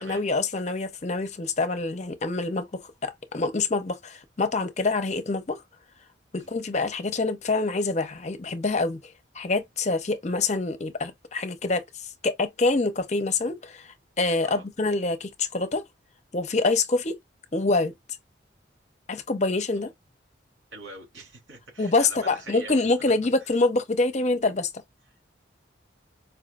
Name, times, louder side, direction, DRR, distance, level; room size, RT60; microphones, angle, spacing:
voice 1, 0.0-5.6 6.3-15.8 16.3-17.2 17.5-17.9 19.1-19.9 21.8-24.7, left 3 dB, 40° left, 0.6 m, -26 dB
voice 2, 20.7-22.9 23.4-23.5, right 2 dB, 80° right, 2.8 m, -44 dB
4.6 x 3.0 x 2.4 m
head